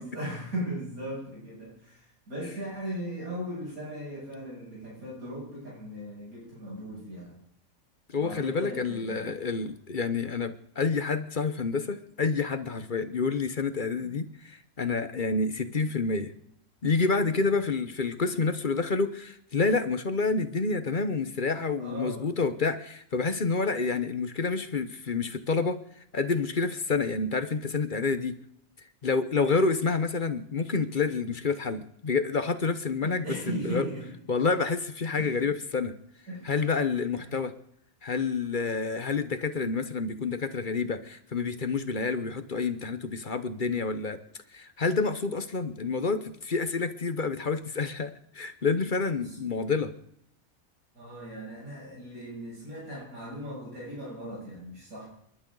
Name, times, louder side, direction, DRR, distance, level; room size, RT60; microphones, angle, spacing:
voice 1, 0.0-7.4 8.1-9.7 14.0-14.2 17.3-17.4 21.8-22.3 33.0-34.1 35.1-35.5 36.3-36.5 37.1-37.4 49.2-49.3 50.9-55.1, equal, 90° right, -5 dB, 7.8 m, -38 dB
voice 2, 8.1-16.3 16.8-25.8 26.1-28.4 29.0-33.9 34.3-36.0 36.4-37.5 38.0-44.2 44.5-49.9, left 4 dB, 40° left, 11 dB, 1.0 m, -28 dB
29.5 x 11.5 x 3.9 m, 0.71 s
omnidirectional pair, 1.4 m